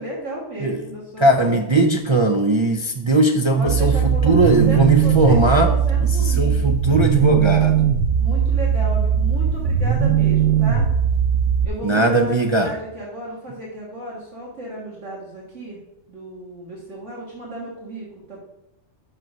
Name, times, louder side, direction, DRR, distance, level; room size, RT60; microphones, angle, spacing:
voice 1, 0.0-1.9 3.6-6.7 8.2-10.9 11.6-15.8 16.1-18.4, right 1 dB, 65° right, -4 dB, 2.1 m, -33 dB
voice 2, 1.2-5.7 6.2-7.8 11.8-12.7, right 2 dB, 50° right, 3 dB, 0.3 m, -19 dB
sound 1, 3.7-11.7, right 8 dB, 85° right, 1.0 m, -19 dB
6.0 x 5.5 x 6.1 m, 0.90 s
omnidirectional pair, 1.3 m